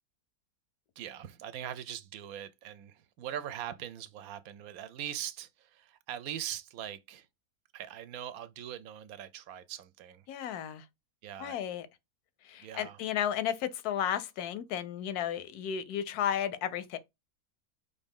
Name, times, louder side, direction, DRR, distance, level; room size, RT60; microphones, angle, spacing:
voice 1, 1.0-7.3 7.7-10.3 11.2-11.6 12.6-13.0, right 10 dB, 75° right, 1.0 m, -41 dB
voice 2, 10.3-10.9 11.4-11.9 12.4-17.0, left 10 dB, 85° left, 1.1 m, -33 dB
5.1 x 2.7 x 3.5 m
omnidirectional pair, 1.6 m